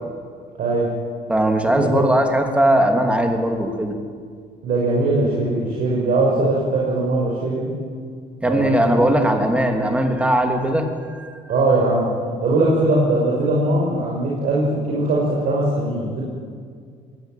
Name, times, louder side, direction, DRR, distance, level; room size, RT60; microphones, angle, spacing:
voice 1, 0.6-0.9 1.6-2.0 4.6-7.7 8.4-9.0 11.5-12.1 12.4-16.2, right 2 dB, 60° right, -4 dB, 5.8 m, -20 dB
voice 2, 1.3-4.0 8.4-11.3, right 1 dB, 5° right, 4 dB, 3.0 m, -19 dB
22.0 x 18.0 x 9.3 m, 2.1 s
cardioid pair, 110°, 17 cm